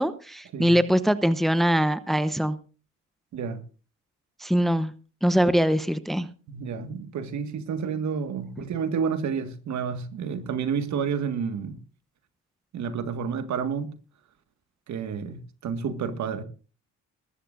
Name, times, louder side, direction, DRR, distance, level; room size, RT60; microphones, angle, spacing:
voice 1, 0.0-2.6 4.4-4.9 5.2-6.3, equal, ahead, 0.9 m, -22 dB
voice 2, 6.5-11.8 12.7-13.9 14.9-16.4, right 6 dB, 70° right, 1.8 m, -30 dB
20.5 x 14.0 x 2.6 m
cardioid pair, 90°, 30 cm